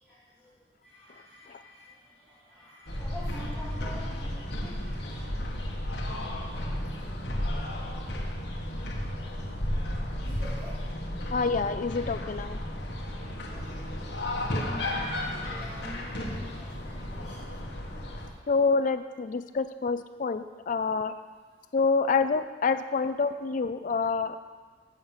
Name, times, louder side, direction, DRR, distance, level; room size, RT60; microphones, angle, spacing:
voice 1, 0.8-5.4 6.5-7.2 10.0-10.7 13.6-13.8 14.6-17.3, left 1 dB, ahead, -13 dB, 2.7 m, -47 dB
sound 1, 2.9-18.3, left 1 dB, 65° left, 1.2 m, -33 dB
voice 2, 11.3-12.6 18.5-21.1 21.7-24.4, left 4 dB, 45° left, 10 dB, 0.4 m, -27 dB
7.5 x 6.5 x 7.2 m, 1.4 s
head